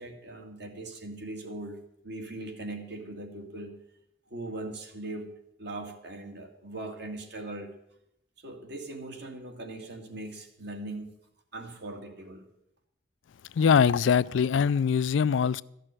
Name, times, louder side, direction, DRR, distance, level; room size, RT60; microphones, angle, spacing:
voice 1, 0.0-1.8 2.0-3.7 4.3-5.3 5.6-7.7 8.4-11.1 11.5-12.4, right 2 dB, 60° right, 2.1 m, -40 dB
voice 2, 13.6-15.6, left 6 dB, 75° left, 0.4 m, -22 dB
13.5 x 6.3 x 9.1 m
head